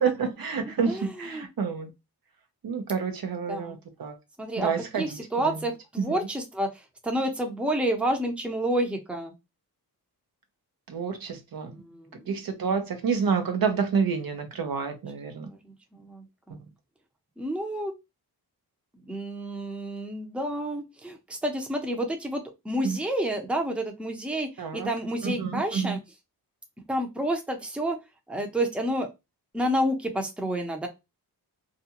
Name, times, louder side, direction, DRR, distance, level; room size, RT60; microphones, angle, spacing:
voice 1, 0.0-1.9 2.6-4.1 4.6-5.0 5.4-5.6 6.0-6.2 10.9-11.8 12.3-15.5 22.8-23.0 24.6-24.9 25.2-26.0, right 6 dB, 60° right, 0.7 m, -28 dB
voice 2, 0.8-1.5 3.5-3.8 4.4-4.7 5.0-9.3 11.7-12.3 15.5-16.6 17.4-17.9 19.1-26.0 26.9-28.0 28.3-29.1 29.5-30.9, right 1 dB, 5° right, 0.6 m, -30 dB
2.5 x 2.2 x 2.8 m
cardioid pair, 70°, 39 cm